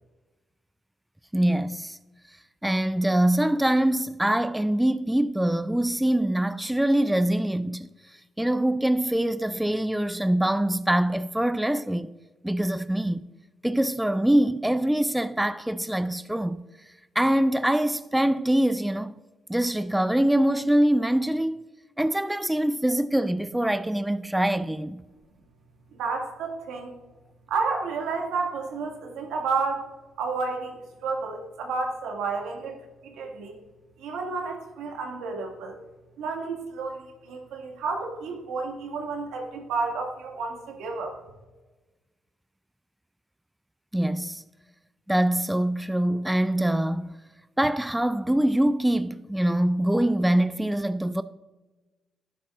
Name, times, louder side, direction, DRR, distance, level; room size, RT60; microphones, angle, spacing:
voice 1, 1.3-2.0 2.6-7.9 8.4-12.1 12.4-13.2 13.6-16.6 17.2-19.1 19.5-21.7 22.0-25.0 43.9-44.4 45.1-47.2 47.6-51.2, right 1 dB, 5° right, 0.4 m, -24 dB
voice 2, 26.0-26.9 27.5-29.9 30.2-32.8 33.0-33.5 34.0-35.8 36.2-41.1, right 4 dB, 90° right, 2.1 m, -31 dB
11.5 x 10.0 x 2.5 m
cardioid pair, 90°, 0 cm